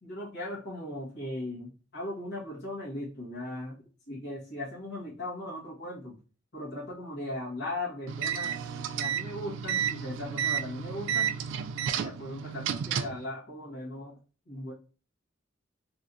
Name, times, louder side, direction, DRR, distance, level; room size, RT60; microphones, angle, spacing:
voice 1, 0.0-6.2 6.5-8.6 8.9-11.4 12.0-14.2 14.5-14.7, left 1 dB, 60° left, -6 dB, 1.3 m, -38 dB
sound 1, 8.1-13.2, right 8 dB, 70° right, 0.3 m, -32 dB
3.3 x 2.8 x 2.6 m, 0.35 s
head